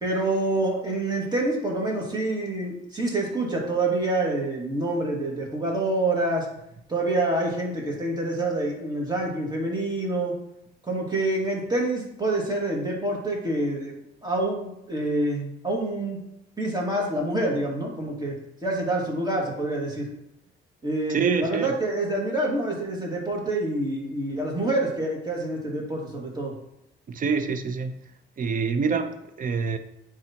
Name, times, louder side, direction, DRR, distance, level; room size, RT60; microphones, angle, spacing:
voice 1, 0.0-6.5 6.9-10.4 10.8-16.2 16.6-18.3 18.6-20.1 20.8-26.5, right 2 dB, 20° right, -2 dB, 2.2 m, -27 dB
voice 2, 21.1-21.7 27.1-27.9 28.4-29.8, right 5 dB, 45° right, 9 dB, 0.7 m, -26 dB
9.4 x 3.7 x 2.9 m, 0.82 s
cardioid pair, 90°, 20 cm